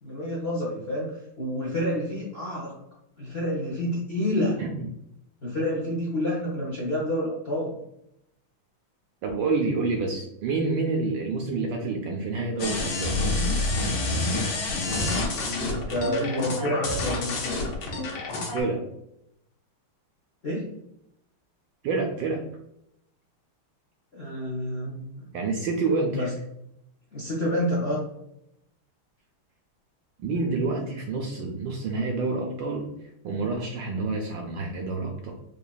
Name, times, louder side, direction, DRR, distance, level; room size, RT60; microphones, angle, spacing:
voice 1, 0.0-2.7 3.2-4.6 5.4-7.7 15.3-17.6 20.4-20.7 24.1-25.1 26.1-26.3 27.1-28.0, left 1 dB, 50° left, -5 dB, 0.7 m, -28 dB
voice 2, 9.2-13.2 18.5-18.8 21.8-22.4 25.3-26.3 30.2-32.9 33.2-35.3, right 3 dB, 75° right, 1 dB, 1.1 m, -28 dB
sound 1, 12.6-18.6, left 2 dB, 70° left, 1.6 m, -28 dB
4.8 x 2.7 x 2.3 m, 0.78 s
omnidirectional pair, 2.4 m